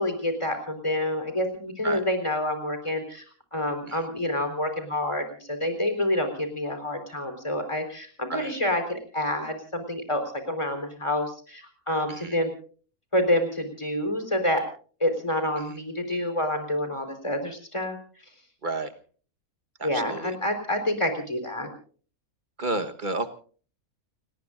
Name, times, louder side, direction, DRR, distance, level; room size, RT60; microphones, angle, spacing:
voice 1, 0.0-3.2 3.5-10.2 10.5-12.5 13.1-14.6 15.0-18.0 19.8-21.7, left 1 dB, 20° left, 7 dB, 4.2 m, -28 dB
voice 2, 19.8-20.3 22.6-23.3, right 3 dB, 35° right, 9 dB, 1.4 m, -31 dB
29.5 x 19.5 x 2.5 m, 0.42 s
omnidirectional pair, 1.5 m